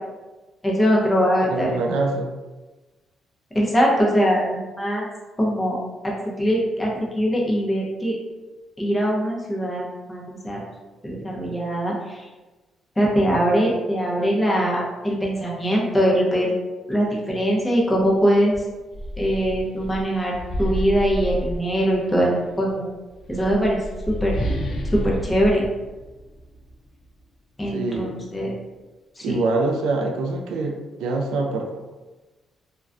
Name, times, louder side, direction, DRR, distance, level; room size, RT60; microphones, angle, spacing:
voice 1, 0.6-2.0 3.5-5.1 5.4-8.2 8.8-10.6 11.0-12.3 13.0-16.6 16.9-18.6 19.2-22.9 23.3-24.4 24.9-25.7 27.6-28.5 29.2-29.4, equal, 15° left, -3 dB, 0.7 m, -22 dB
voice 2, 1.5-2.3 27.7-28.1 29.2-31.8, right 3 dB, 90° right, 2 dB, 0.3 m, -24 dB
sound 1, 18.0-18.1 18.5-22.1 23.1-26.7, equal, 65° left, 0.4 m, -30 dB
2.3 x 2.2 x 2.4 m, 1.2 s
cardioid pair, 90°, 0 cm